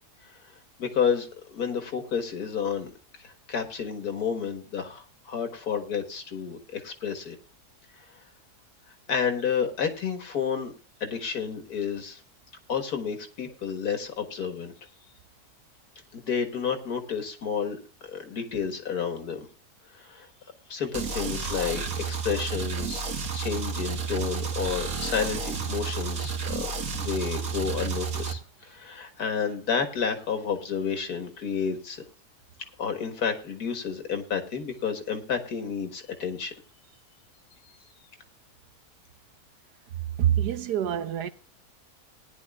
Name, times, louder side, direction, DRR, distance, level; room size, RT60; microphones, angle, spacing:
voice 1, 0.8-2.9 3.2-7.4 9.1-10.7 11.0-12.2 12.7-14.7 16.1-19.5 19.9-20.3 20.7-23.0 23.3-32.0 32.8-36.5, left 6 dB, 70° left, 2.2 m, -30 dB
sound 1, 20.9-28.3, right 5 dB, 60° right, 1.9 m, -31 dB
voice 2, 40.2-41.3, right 10 dB, 85° right, 1.5 m, -25 dB
19.5 x 10.5 x 2.4 m
omnidirectional pair, 1.7 m